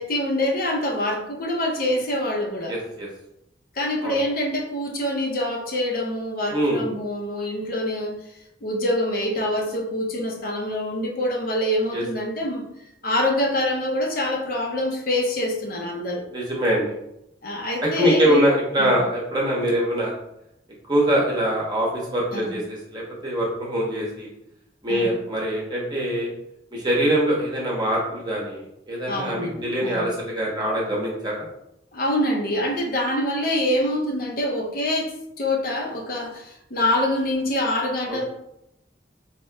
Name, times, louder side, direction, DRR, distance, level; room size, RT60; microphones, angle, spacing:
voice 1, 0.0-2.7 3.7-8.2 8.6-12.7 13.0-16.2 17.4-18.5 18.8-19.0 22.3-22.6 24.9-25.2 29.1-30.1 31.9-38.2, left 1 dB, 50° left, -1 dB, 0.6 m, -25 dB
voice 2, 2.7-3.1 4.0-4.2 6.5-6.8 11.9-12.0 16.3-17.0 17.8-20.1 20.9-24.3 24.8-26.3 26.7-31.5 38.1-38.2, equal, 25° right, -4 dB, 0.8 m, -23 dB
4.2 x 2.8 x 2.2 m, 0.82 s
head